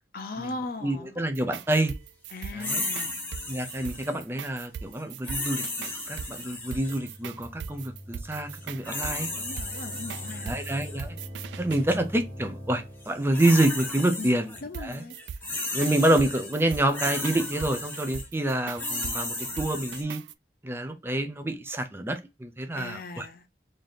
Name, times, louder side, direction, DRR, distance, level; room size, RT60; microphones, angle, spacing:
voice 1, 0.1-1.2 2.3-3.2 9.1-10.6 14.2-15.2 22.8-23.5, left 2 dB, 55° left, 0.6 m, -39 dB
voice 2, 0.8-1.9 2.5-2.8 3.5-9.3 10.4-11.2 11.6-14.5 14.8-15.0 15.7-20.2 20.6-23.3, right 1 dB, 15° right, 0.5 m, -27 dB
sound 1, 1.3-11.8 14.7-20.3, right 7 dB, 85° right, 0.3 m, -40 dB
sound 2, 2.6-4.2 5.2-7.1 8.6-11.0 11.7-12.0 13.0-14.6 14.9-20.0, left 2 dB, 10° left, 1.0 m, -34 dB
sound 3, 6.5-13.3, equal, 35° right, 1.2 m, -43 dB
3.3 x 2.6 x 3.9 m
head